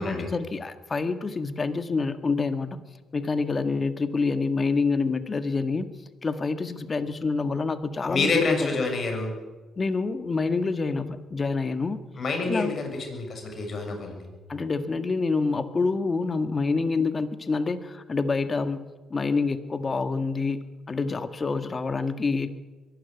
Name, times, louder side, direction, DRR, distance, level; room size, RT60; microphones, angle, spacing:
voice 1, 0.0-2.8 3.1-5.9 6.2-8.7 9.8-12.0 12.4-12.8 14.5-18.8 19.1-20.6 20.9-22.6, left 4 dB, 35° left, 10 dB, 1.8 m, -27 dB
voice 2, 8.1-9.3 12.2-14.3, left 3 dB, 50° left, 3 dB, 6.8 m, -27 dB
22.5 x 12.5 x 9.6 m, 1.3 s
supercardioid pair, 65°, 0 cm